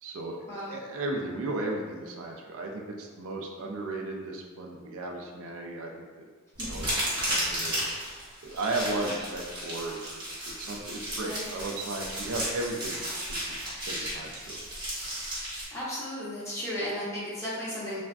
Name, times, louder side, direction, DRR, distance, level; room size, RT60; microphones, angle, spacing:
voice 1, 0.0-6.2 6.6-7.8 8.4-13.0 13.3-13.5 13.8-14.6, right 2 dB, 65° right, 1 dB, 0.3 m, -35 dB
sound 1, 6.6-15.7, right 1 dB, 20° right, 0.8 m, -34 dB
voice 2, 15.7-18.0, equal, 15° left, -8 dB, 0.7 m, -35 dB
3.3 x 2.4 x 2.3 m, 1.4 s
head